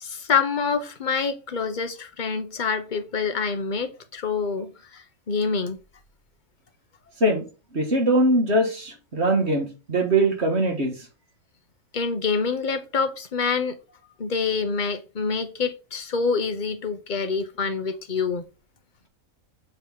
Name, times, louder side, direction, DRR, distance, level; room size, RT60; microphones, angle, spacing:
voice 1, 0.0-5.8 11.9-13.8 14.2-18.4, left 5 dB, 40° left, 1.0 m, -26 dB
voice 2, 7.7-10.9, right 1 dB, 50° right, 2.0 m, -21 dB
7.9 x 4.1 x 3.6 m
omnidirectional pair, 1.5 m